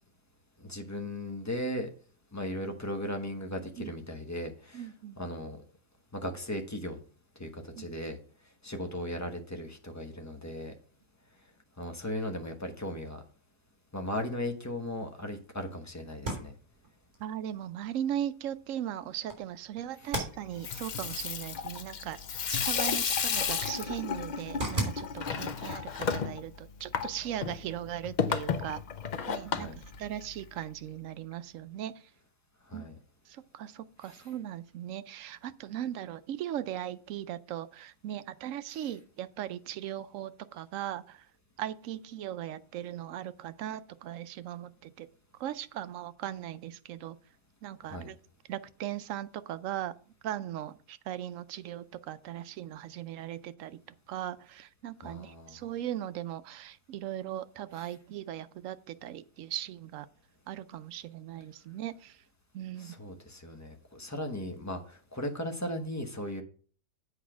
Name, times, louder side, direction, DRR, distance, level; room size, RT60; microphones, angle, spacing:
voice 1, 0.6-1.9 2.3-4.9 5.2-5.6 6.1-7.0 7.4-8.2 8.6-10.7 11.8-13.2 13.9-16.5 20.0-20.1 29.5-29.8 32.7-33.0 34.0-34.3 47.9-48.1 55.0-55.6 57.8-57.9 62.8-66.4, left 1 dB, 15° left, 0.9 m, -37 dB
voice 2, 4.7-5.2 7.7-7.9 17.2-22.2 22.5-28.8 29.3-32.1 32.7-32.9 33.3-41.3 41.6-45.1 45.4-47.2 47.6-48.2 48.5-49.9 50.2-53.8 54.1-60.1 60.5-62.2 62.5-62.9, right 11 dB, 70° right, 0.9 m, -38 dB
sound 1, 16.1-27.7, right 1 dB, 35° right, 3.3 m, -42 dB
Water tap faucet / Sink (filling or washing), 20.4-30.6, left 6 dB, 65° left, 0.4 m, -33 dB
8.2 x 4.9 x 6.0 m
omnidirectional pair, 1.6 m